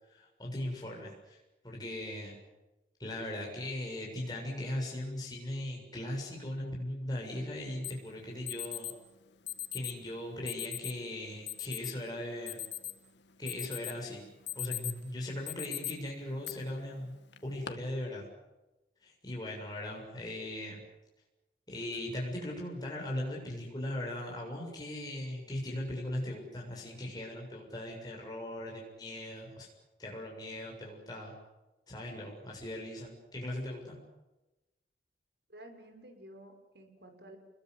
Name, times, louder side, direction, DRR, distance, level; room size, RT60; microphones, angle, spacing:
voice 1, 0.1-1.4 1.6-2.4 3.0-8.9 9.7-12.6 13.4-14.2 14.6-17.1 17.4-18.3 19.0-20.8 21.7-29.7 30.0-31.3 31.9-34.0, left 1 dB, 20° left, -2 dB, 7.2 m, -39 dB
Alarm, 7.8-7.9 8.5-8.9 9.5-10.0 10.5-10.9 11.5-11.9 12.3-13.1 13.5-14.0 14.3-15.0 15.5-15.9 16.4-16.5 17.3-17.7, left 12 dB, 85° left, 2.0 m, -38 dB
voice 2, 35.5-37.4, right 1 dB, 65° right, 6 dB, 5.6 m, -52 dB
29.5 x 21.5 x 8.1 m, 1.0 s
head